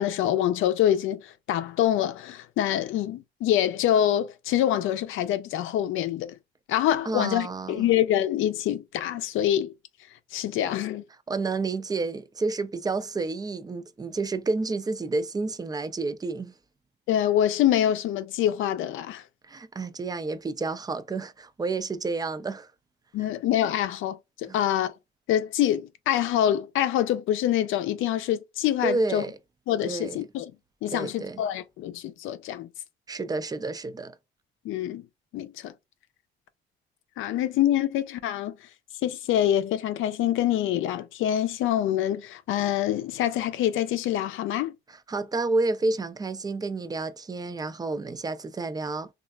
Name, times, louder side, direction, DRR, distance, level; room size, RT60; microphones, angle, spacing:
voice 1, 0.0-6.3 6.7-9.7 10.3-11.0 17.1-19.2 23.1-24.9 25.3-29.2 29.7-30.5 30.8-32.7 34.6-35.0 35.3-35.7 37.2-38.6 39.0-44.7, left 11 dB, 85° left, 0.5 m, -25 dB
voice 2, 7.0-7.9 11.3-16.5 19.5-22.7 24.5-24.6 28.8-29.4 29.8-30.2 30.9-31.4 33.1-34.2 44.9-49.1, right 3 dB, 20° right, 0.4 m, -30 dB
3.2 x 2.4 x 2.2 m
cardioid pair, 90°, 20 cm